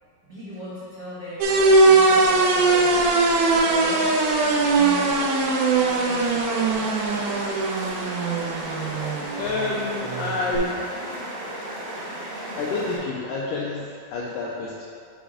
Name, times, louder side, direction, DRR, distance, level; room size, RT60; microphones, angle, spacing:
voice 1, 0.2-1.5 1.8-3.0 3.7-4.1 4.5-5.2 5.7-7.6, equal, 70° right, -11 dB, 1.0 m, -38 dB
sound 1, 1.4-13.0, right 1 dB, 55° right, 1.6 m, -34 dB
sound 2, 1.4-10.6, right 3 dB, 85° right, 2.6 m, -21 dB
voice 2, 9.4-10.9 12.6-14.8, left 3 dB, 85° left, -4 dB, 1.8 m, -28 dB
7.1 x 3.0 x 4.8 m, 2.3 s
omnidirectional pair, 4.3 m